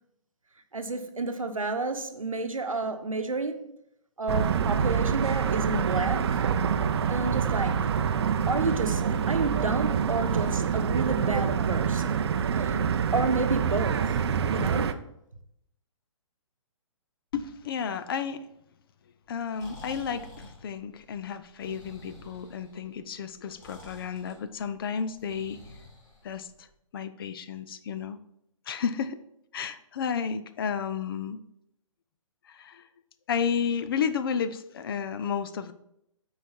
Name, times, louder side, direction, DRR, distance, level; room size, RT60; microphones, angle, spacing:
voice 1, 0.7-3.7 4.2-6.4 7.1-7.8 8.5-12.2 12.5-12.8 13.1-14.2 14.5-15.0, right 3 dB, 85° right, 1.0 m, -30 dB
sound 1, 4.3-14.9, right 7 dB, 50° right, 0.5 m, -26 dB
voice 2, 17.3-18.5 19.3-25.6 26.2-26.7 26.9-28.2 28.7-29.2 29.5-31.4 32.5-32.9 33.3-35.7, left 7 dB, 45° left, 0.5 m, -32 dB
Breathing, 19.3-26.7, left 1 dB, 30° left, 2.4 m, -50 dB
8.9 x 4.8 x 4.4 m
figure-of-eight pair, 125°, 17 cm